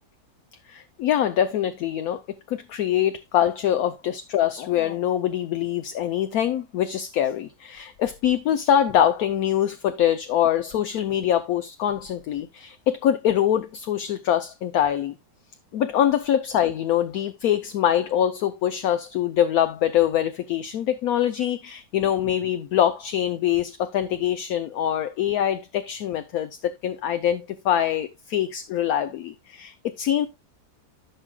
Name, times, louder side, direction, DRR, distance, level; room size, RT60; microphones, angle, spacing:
voice 1, 0.7-2.2 2.5-15.1 15.7-30.3, left 10 dB, 65° left, 1.0 m, -24 dB
14.5 x 6.1 x 2.3 m
omnidirectional pair, 1.8 m